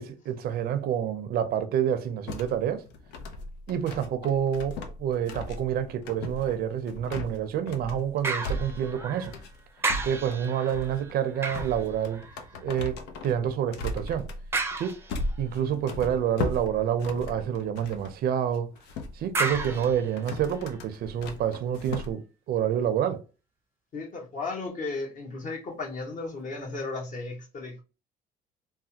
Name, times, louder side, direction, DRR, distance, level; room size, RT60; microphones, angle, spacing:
voice 1, 0.0-2.9 3.7-9.3 10.0-12.2 12.6-14.3 14.7-15.0 15.4-18.7 19.1-23.2, right 9 dB, 65° right, 0.5 m, -28 dB
sound 1, 2.3-18.2 18.5-22.1, left 2 dB, 90° left, 0.5 m, -38 dB
sound 2, 8.2-9.5 9.8-12.6 14.5-15.5 19.3-20.8 21.4-21.5, right 3 dB, 15° right, 0.5 m, -33 dB
voice 2, 23.9-27.8, left 3 dB, 50° left, 1.1 m, -35 dB
3.3 x 2.2 x 2.8 m
cardioid pair, 110°, 17 cm